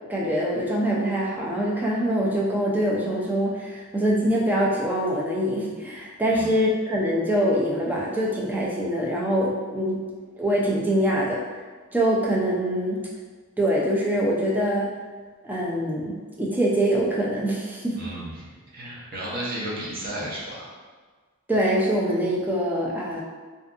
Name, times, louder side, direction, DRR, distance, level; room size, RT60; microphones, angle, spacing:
voice 1, 0.1-10.0 10.4-11.4 11.9-13.0 13.6-14.9 15.4-18.0 21.5-23.2, equal, 10° right, -4 dB, 0.3 m, -24 dB
voice 2, 17.9-20.7, right 1 dB, 45° right, -6 dB, 0.7 m, -33 dB
2.6 x 2.4 x 2.3 m, 1.4 s
head